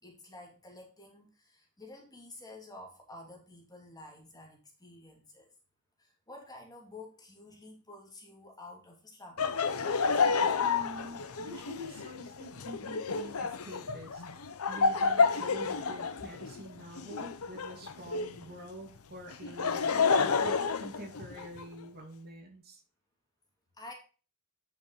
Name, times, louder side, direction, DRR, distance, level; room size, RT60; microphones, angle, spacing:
voice 1, 0.0-5.5 6.0-9.6 23.8-23.9, left 2 dB, 20° left, 1 dB, 2.8 m, -50 dB
Laughter, 9.4-18.4 19.3-21.6, left 5 dB, 85° left, 0.8 m, -30 dB
voice 2, 10.6-14.2 14.7-22.8, equal, 45° right, 2 dB, 2.3 m, -46 dB
9.3 x 6.6 x 3.1 m, 0.35 s
head